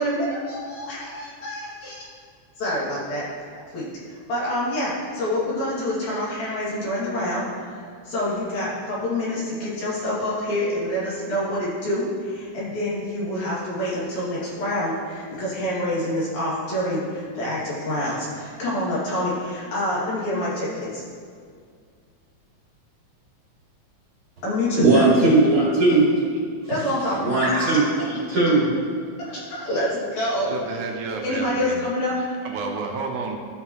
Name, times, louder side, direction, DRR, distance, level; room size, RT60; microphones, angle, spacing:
voice 1, 0.0-2.1 2.6-3.3 3.7-21.0 24.4-25.3 26.7-27.5 29.2-30.6 31.2-32.1, left 1 dB, 75° left, -8 dB, 3.6 m, -27 dB
voice 2, 24.8-26.0 27.2-28.7, right 2 dB, 45° right, -7 dB, 3.1 m, -18 dB
voice 3, 30.5-31.8 32.2-33.3, right 4 dB, 90° right, 2 dB, 2.5 m, -31 dB
13.5 x 5.6 x 3.0 m, 2.1 s
omnidirectional pair, 3.3 m